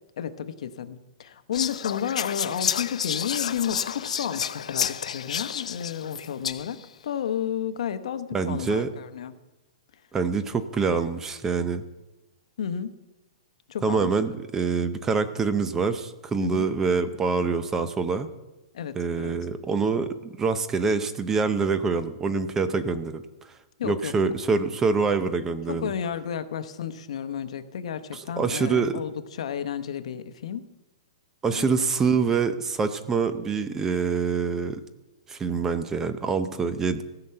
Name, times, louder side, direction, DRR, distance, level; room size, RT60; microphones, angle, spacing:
voice 1, 0.2-9.3 12.6-12.9 13.7-14.1 16.4-16.7 18.7-19.3 23.8-24.3 25.7-30.7 31.5-31.7, left 8 dB, 65° left, 11 dB, 0.9 m, -32 dB
Whispering, 1.5-6.8, left 8 dB, 85° left, 0.5 m, -30 dB
voice 2, 8.3-8.9 10.1-11.8 13.8-18.3 19.0-23.5 23.8-25.9 28.1-29.0 31.4-34.8 35.3-37.0, right 5 dB, 10° right, 11 dB, 0.6 m, -25 dB
16.0 x 5.9 x 7.8 m, 1.0 s
hypercardioid pair, 160°, 4 cm